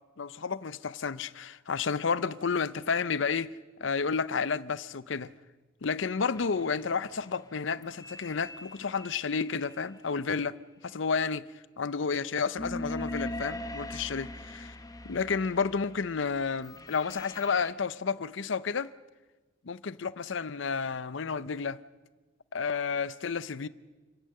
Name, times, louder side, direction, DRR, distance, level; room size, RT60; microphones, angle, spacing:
voice 1, 0.2-3.5 3.8-5.3 5.8-10.6 10.8-11.4 11.8-14.7 15.0-18.9 19.6-21.8 22.5-23.7, left 5 dB, 70° left, 0.6 m, -31 dB
sound 1, 6.3-9.9 12.6-17.7, left 1 dB, 20° left, 0.8 m, -42 dB
29.5 x 10.0 x 8.8 m
head